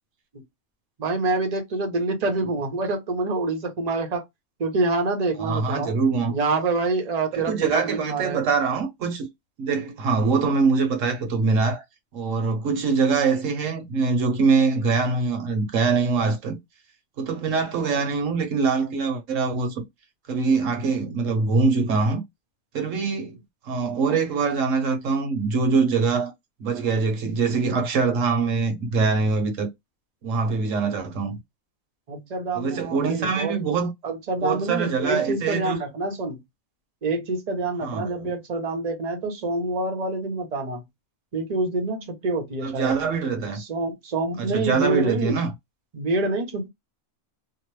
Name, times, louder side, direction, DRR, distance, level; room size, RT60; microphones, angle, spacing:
voice 1, 1.0-4.2 4.6-5.9 6.3-8.4 32.1-33.6 34.0-36.4 37.0-40.8 41.3-42.9 43.5-45.4 45.9-46.7, right 2 dB, 40° right, 0.7 m, -26 dB
voice 2, 5.4-6.4 7.3-9.3 9.6-11.8 12.1-16.6 17.2-19.8 20.3-22.2 22.7-23.4 23.6-26.3 26.6-29.7 30.2-31.4 32.5-33.9 34.4-35.8 37.8-38.3 42.6-43.6 44.4-45.5, right 4 dB, 70° right, 1.2 m, -23 dB
2.9 x 2.1 x 3.1 m
omnidirectional pair, 1.4 m